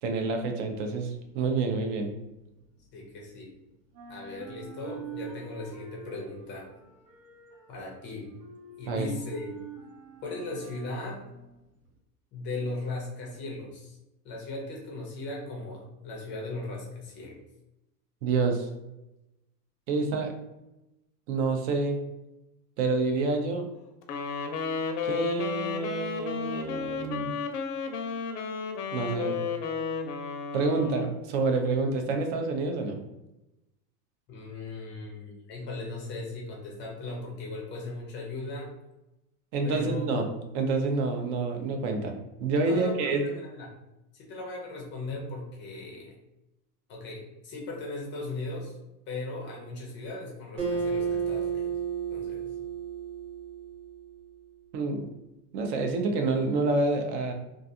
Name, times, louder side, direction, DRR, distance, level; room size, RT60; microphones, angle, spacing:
voice 1, 0.0-2.1 8.9-9.1 18.2-18.7 19.9-20.3 21.3-22.0 22.8-23.7 25.0-27.3 28.9-29.4 30.5-33.0 39.5-40.2 40.5-43.2 54.7-55.1 55.5-57.3, right 3 dB, 50° right, 4 dB, 0.5 m, -28 dB
sound 1, 1.1-3.5 3.8-12.0, right 7 dB, 75° right, 0.8 m, -47 dB
voice 2, 2.9-3.5 4.1-6.7 7.7-8.3 8.8-9.6 10.2-11.2 12.3-14.0 14.2-17.4 34.3-38.7 39.6-40.4 42.6-43.7 44.1-46.2 46.9-48.8 49.1-51.7 52.1-52.5, left 2 dB, 25° left, -1 dB, 0.5 m, -38 dB
Wind instrument woodwind instrument, 24.0-31.3, left 6 dB, 75° left, 0.6 m, -33 dB
Acoustic guitar, 50.6-54.1, right 6 dB, 25° right, 1.0 m, -32 dB
2.4 x 2.3 x 2.6 m, 0.94 s
supercardioid pair, 135°, 48 cm